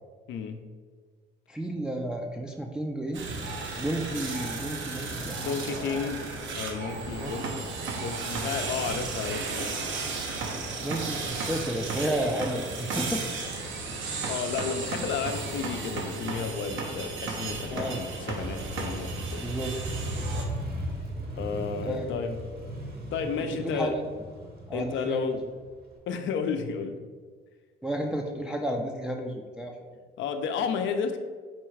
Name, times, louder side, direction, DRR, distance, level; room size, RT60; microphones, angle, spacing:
voice 1, 0.3-0.6 5.4-7.5 7.9-9.8 14.3-19.5 21.4-22.4 23.1-24.0 24.7-25.4 26.1-27.0 30.2-31.2, left 6 dB, 75° left, 7 dB, 0.5 m, -32 dB
voice 2, 1.5-3.3 3.8-5.8 7.2-7.3 10.8-13.2 17.7-18.0 19.4-19.8 21.8-22.2 23.6-24.1 24.7-25.3 27.8-29.8, right 1 dB, 5° right, 0 dB, 0.4 m, -32 dB
sound 1, 3.1-20.4, right 4 dB, 75° right, 0.7 m, -34 dB
Motorcycle, 18.3-25.9, right 1 dB, 50° right, 1.0 m, -37 dB
4.3 x 2.3 x 4.5 m, 1.5 s
cardioid pair, 90°, 20 cm